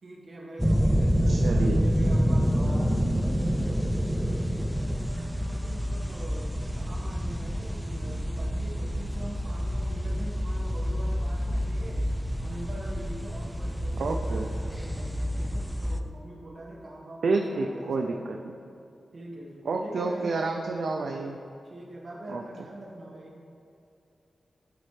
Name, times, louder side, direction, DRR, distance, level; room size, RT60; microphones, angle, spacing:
voice 1, 0.0-3.0 4.6-12.1 12.4-18.2 19.1-20.5 21.6-23.4, right 1 dB, 50° right, -3 dB, 1.4 m, -43 dB
sound 1, 0.6-16.0, equal, 5° right, 0.4 m, -28 dB
voice 2, 1.3-1.8 14.0-14.4 17.2-18.4 19.7-21.4 22.3-22.4, right 3 dB, 85° right, 2 dB, 0.4 m, -29 dB
12.0 x 4.3 x 3.3 m, 2.6 s
wide cardioid pair, 110°, 0 cm